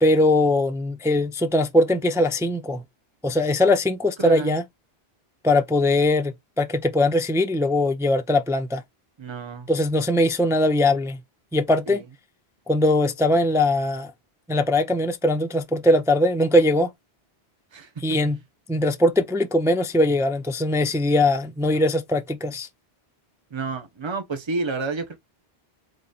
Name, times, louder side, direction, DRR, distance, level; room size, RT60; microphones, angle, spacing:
voice 1, 0.0-2.8 3.2-4.6 5.4-8.8 9.7-11.2 11.5-12.0 12.7-14.1 14.5-16.9 18.0-18.4 18.7-22.7, left 1 dB, 5° right, 0.3 m, -21 dB
voice 2, 4.2-4.6 9.2-9.7 11.9-12.0 17.7-17.9 23.5-25.1, right 3 dB, 30° right, 0.9 m, -30 dB
4.0 x 3.3 x 4.0 m
omnidirectional pair, 1.1 m